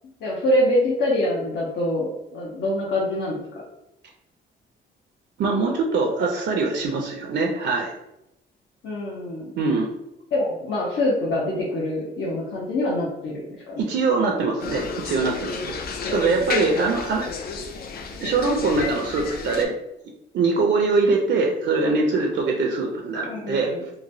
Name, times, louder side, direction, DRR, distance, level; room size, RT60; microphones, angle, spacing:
voice 1, 0.2-3.6 8.8-9.5 10.3-13.9 23.2-23.9, left 1 dB, 65° left, -6 dB, 0.8 m, -25 dB
voice 2, 5.4-7.9 9.6-9.9 13.8-15.8 16.1-17.2 18.2-19.7 20.3-23.7, right 3 dB, 60° right, 1 dB, 0.5 m, -23 dB
sound 1, 14.6-19.7, left 4 dB, 50° left, 0.4 m, -31 dB
3.0 x 2.2 x 2.6 m, 0.86 s
cardioid pair, 90°, 20 cm